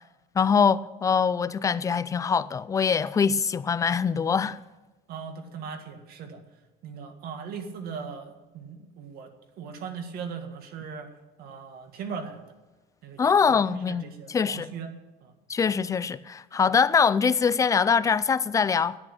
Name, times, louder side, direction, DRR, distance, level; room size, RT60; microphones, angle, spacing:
voice 1, 0.4-4.6 13.2-14.7 15.5-19.0, left 6 dB, 15° left, 0.4 m, -23 dB
voice 2, 5.1-6.4 6.8-9.3 9.6-11.1 11.4-12.4 13.0-14.9 15.2-15.3, right 6 dB, 55° right, 1.9 m, -39 dB
10.5 x 8.6 x 10.0 m
cardioid pair, 140°, 19 cm